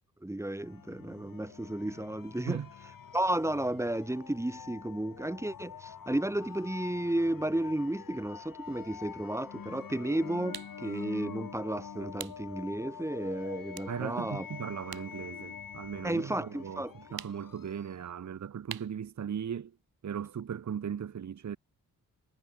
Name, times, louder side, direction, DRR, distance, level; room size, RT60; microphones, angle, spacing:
voice 1, 0.2-2.6 3.1-14.5 16.0-16.9, right 1 dB, 10° right, 0.8 m, -33 dB
sound 1, 0.6-18.1, left 7 dB, 65° left, 3.4 m, -46 dB
sound 2, 10.5-10.8 12.2-12.5 12.9-13.1 13.7-15.1 15.4-16.5 17.2-17.6 18.7-19.0, right 9 dB, 80° right, 5.6 m, -44 dB
voice 2, 13.9-19.7 20.0-21.6, right 8 dB, 50° right, 1.0 m, -38 dB
cardioid pair, 55°, 36 cm